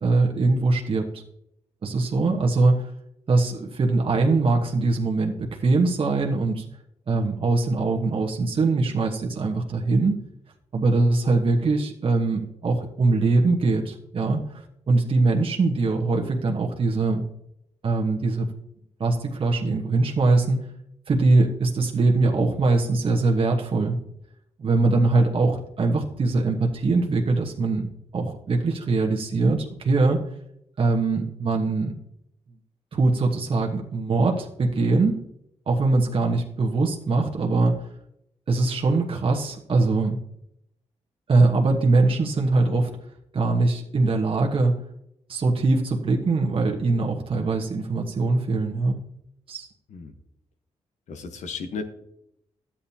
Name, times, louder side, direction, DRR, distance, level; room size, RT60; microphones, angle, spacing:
voice 1, 0.0-1.0 1.8-2.9 3.3-6.7 7.1-10.2 10.7-17.2 17.8-18.5 19.0-20.7 21.1-24.0 24.6-30.2 30.8-32.0 32.9-35.2 35.7-37.9 38.5-40.2 41.3-43.0 43.3-44.8 45.3-49.0 49.5-49.7, right 3 dB, 50° right, 0 dB, 1.2 m, -22 dB
voice 2, 51.1-51.8, left 5 dB, 85° left, 6 dB, 1.2 m, -34 dB
12.5 x 8.7 x 2.8 m, 0.77 s
cardioid pair, 90°, 12 cm